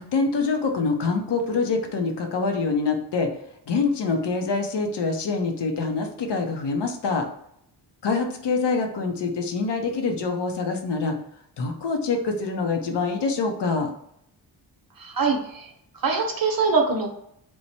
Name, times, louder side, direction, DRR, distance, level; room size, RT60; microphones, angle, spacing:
voice 1, 0.0-3.3 3.7-7.2 8.0-11.2 11.6-13.9, left 4 dB, 70° left, 4 dB, 0.7 m, -25 dB
voice 2, 15.0-15.7 16.0-17.1, right 4 dB, 50° right, 3 dB, 0.8 m, -23 dB
3.1 x 2.1 x 4.1 m, 0.74 s
wide cardioid pair, 110°, 43 cm